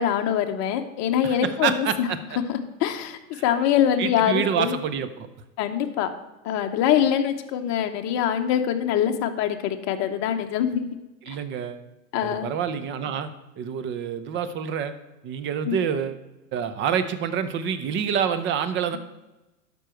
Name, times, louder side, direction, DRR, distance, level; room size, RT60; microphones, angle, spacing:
voice 1, 0.0-2.1 2.5-4.7 5.6-6.1 6.4-11.0 11.3-11.4 12.1-12.5 15.6-15.8, left 9 dB, 35° left, 5 dB, 0.9 m, -24 dB
voice 2, 1.2-2.4 3.3-3.4 4.0-5.3 11.3-11.8 12.2-13.3 13.6-14.9 15.2-16.2 16.5-19.0, right 8 dB, 25° right, 11 dB, 0.7 m, -27 dB
12.0 x 5.4 x 4.5 m, 1.0 s
hypercardioid pair, 100°, 48 cm